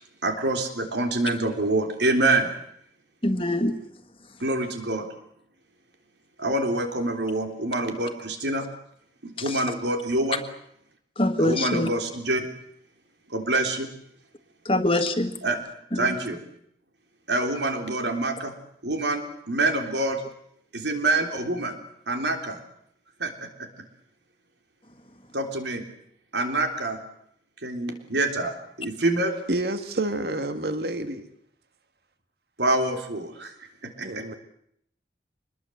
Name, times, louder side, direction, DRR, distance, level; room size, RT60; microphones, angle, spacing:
voice 1, 0.2-2.5 4.4-5.1 6.4-8.6 9.2-10.4 11.4-12.5 13.3-13.9 15.4-15.6 16.0-16.4 17.3-18.5 18.8-19.2 19.5-20.2 20.7-21.8 22.1-22.6 23.2-23.5 25.3-25.8 26.3-27.0 27.6-28.5 28.8-29.3 32.6-33.5 33.8-34.2, right 2 dB, 85° right, 3.6 m, -26 dB
voice 2, 3.2-3.8 9.5-9.6 11.2-11.9 14.6-15.3 15.9-16.1, left 1 dB, 30° left, 1.6 m, -24 dB
voice 3, 29.5-31.2 34.0-34.4, right 1 dB, 65° right, 1.8 m, -28 dB
25.0 x 21.0 x 8.0 m
head